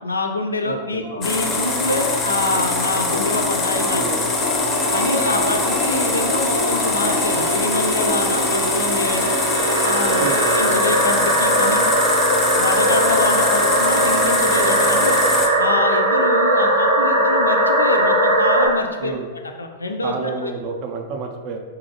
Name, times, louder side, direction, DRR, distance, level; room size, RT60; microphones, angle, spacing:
voice 1, 0.0-4.0 4.9-9.3 9.8-10.3 10.6-11.9 12.6-15.2 15.6-19.1 19.6-20.5, left 2 dB, 85° left, 4 dB, 0.3 m, -25 dB
voice 2, 0.6-1.0 4.0-4.4 5.1-5.5 10.2-10.4 19.0-19.3 20.0-21.6, right 5 dB, 45° right, 3 dB, 0.3 m, -30 dB
sound 1, 1.0-18.7, right 1 dB, 65° right, 0.7 m, -21 dB
sound 2, 1.2-15.5, left 3 dB, 25° left, 0.4 m, -23 dB
Bowed string instrument, 4.2-10.9, right 4 dB, 90° right, 1.0 m, -30 dB
2.7 x 2.7 x 2.6 m, 1.4 s
figure-of-eight pair, 100°, 0 cm